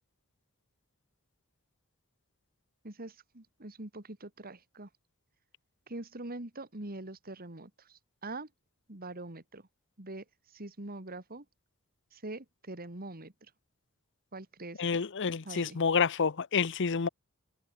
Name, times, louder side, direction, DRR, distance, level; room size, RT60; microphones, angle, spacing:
voice 1, 2.8-4.9 5.9-8.5 8.9-9.7 10.0-11.4 12.1-13.5 14.3-15.0 15.4-15.8, right 2 dB, 45° right, 2.8 m, -44 dB
voice 2, 14.8-17.1, left 5 dB, 60° left, 0.7 m, -28 dB
head